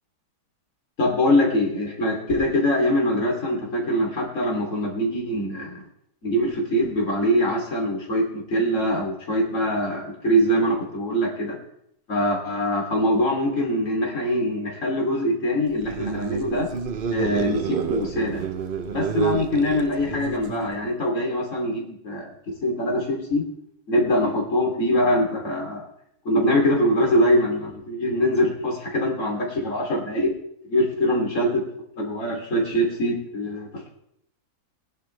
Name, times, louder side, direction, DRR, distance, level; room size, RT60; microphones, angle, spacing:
voice 1, 1.0-5.8 6.2-11.6 12.1-16.7 17.1-18.4 18.9-22.3 22.6-23.4 23.9-25.9 26.2-30.3 30.7-31.6 32.0-33.9, equal, 45° left, -1 dB, 3.2 m, -23 dB
sound 1, 15.7-20.8, right 6 dB, 50° right, 0.6 m, -29 dB
20.0 x 11.0 x 3.2 m, 0.73 s
omnidirectional pair, 1.8 m